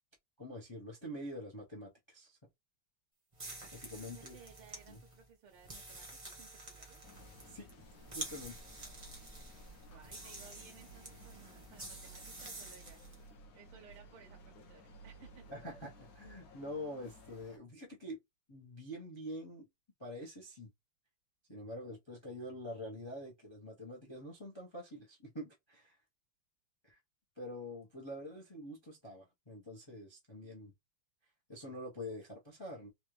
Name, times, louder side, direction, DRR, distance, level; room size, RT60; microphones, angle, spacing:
voice 1, 0.4-2.4 3.7-4.4 4.9-5.0 7.5-7.7 8.1-8.5 15.5-18.2 18.5-19.7 20.0-20.7 21.5-26.0 26.8-27.0 27.4-30.7 31.5-32.9, left 1 dB, 35° left, 0.4 m, -46 dB
sound 1, 3.3-13.2, right 2 dB, 25° right, 0.6 m, -49 dB
voice 2, 4.1-7.0 9.8-13.0 13.5-15.6, right 6 dB, 80° right, 1.7 m, -59 dB
sound 2, 7.0-17.6, equal, 60° left, 1.0 m, -57 dB
4.1 x 2.5 x 3.1 m
omnidirectional pair, 2.4 m